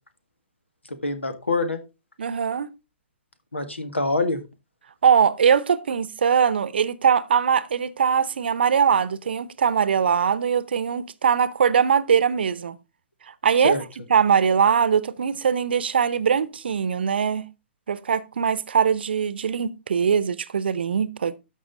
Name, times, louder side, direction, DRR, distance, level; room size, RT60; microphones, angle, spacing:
voice 1, 0.9-1.8 3.5-4.4 13.6-13.8, left 2 dB, 80° left, 1.6 m, -25 dB
voice 2, 2.2-2.7 5.0-12.8 13.3-13.8 14.1-17.5 17.9-21.3, right 7 dB, 60° right, 0.8 m, -21 dB
13.0 x 5.5 x 3.8 m
figure-of-eight pair, 120°, 6 cm